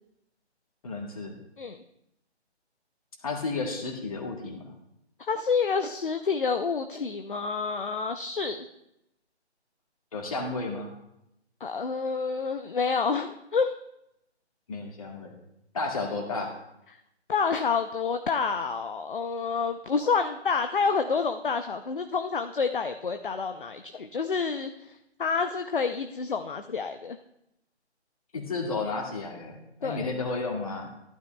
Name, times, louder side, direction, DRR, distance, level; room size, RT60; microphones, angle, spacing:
voice 1, 0.8-1.4 3.2-4.6 10.1-10.9 14.7-15.3 15.7-16.5 28.3-30.9, left 3 dB, 30° left, 0 dB, 2.0 m, -32 dB
voice 2, 5.2-8.7 11.6-13.7 17.3-27.2 29.8-30.1, left 5 dB, 50° left, 8 dB, 0.6 m, -28 dB
14.5 x 12.0 x 2.3 m, 0.83 s
figure-of-eight pair, 160°, 34 cm